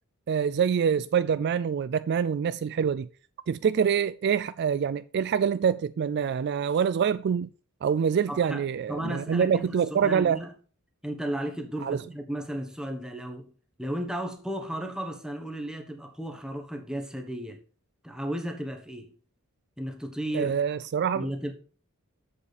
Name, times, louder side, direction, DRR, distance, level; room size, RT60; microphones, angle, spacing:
voice 1, 0.3-3.1 3.5-7.5 7.8-10.4 11.8-12.0 20.3-21.3, right 7 dB, 50° right, 0.3 m, -25 dB
voice 2, 8.3-8.6 8.9-10.5 11.0-13.5 13.8-17.6 18.0-19.1 19.8-20.6 21.1-21.5, right 1 dB, 5° right, 1.3 m, -34 dB
7.4 x 6.7 x 5.0 m
head